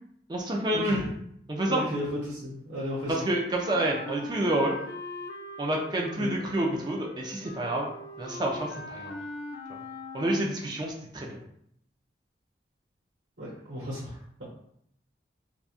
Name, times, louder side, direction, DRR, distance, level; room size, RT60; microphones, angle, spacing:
voice 1, 0.3-1.1 1.5-1.8 3.1-4.8 5.6-7.9 8.2-9.1 10.1-11.4, right 1 dB, 25° right, 0 dB, 0.4 m, -28 dB
voice 2, 1.6-3.2 6.2-6.3 13.4-14.4, left 1 dB, 85° right, -6 dB, 0.9 m, -34 dB
Wind instrument woodwind instrument, 3.6-10.6, left 2 dB, 65° left, 0.4 m, -41 dB
2.9 x 2.2 x 2.4 m, 0.71 s
head